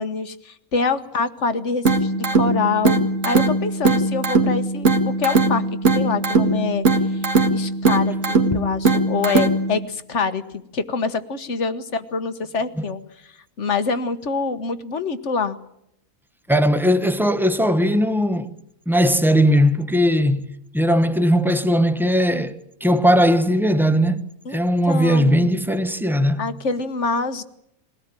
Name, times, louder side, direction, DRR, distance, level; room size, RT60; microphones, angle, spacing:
voice 1, 0.0-7.2 7.5-13.0 13.6-15.6 24.4-24.6 24.9-25.5 26.4-27.4, left 4 dB, 55° left, 1.5 m, -25 dB
sound 1, 1.9-9.9, right 3 dB, 60° right, 2.3 m, -20 dB
voice 2, 16.5-18.5 18.9-24.2 24.5-26.4, equal, ahead, 1.0 m, -18 dB
22.0 x 18.0 x 8.9 m
omnidirectional pair, 1.5 m